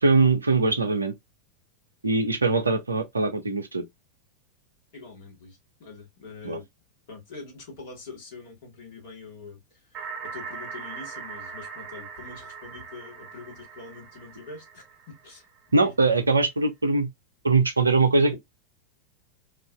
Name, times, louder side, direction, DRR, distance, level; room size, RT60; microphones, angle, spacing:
voice 1, 0.0-1.1 2.0-3.8 6.4-6.6 15.7-17.1 17.4-18.4, right 3 dB, 75° right, 0.5 m, -22 dB
voice 2, 4.9-6.7 7.1-15.5 15.8-16.1, left 4 dB, 55° left, 1.3 m, -44 dB
sound 1, 9.9-15.6, right 6 dB, 35° right, 0.7 m, -40 dB
2.4 x 2.3 x 2.3 m
figure-of-eight pair, 90°, 0 cm